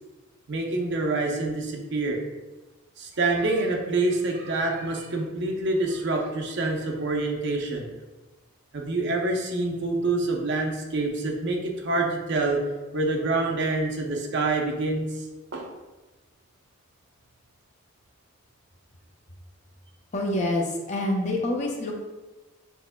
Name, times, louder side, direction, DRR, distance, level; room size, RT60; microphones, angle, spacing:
voice 1, 0.5-2.2 3.0-7.9 8.7-12.6 12.9-15.2 15.5-15.7, right 2 dB, 55° right, 1 dB, 0.7 m, -26 dB
voice 2, 20.1-21.9, left 1 dB, 30° left, 0 dB, 0.5 m, -26 dB
5.9 x 3.4 x 2.2 m, 1.1 s
head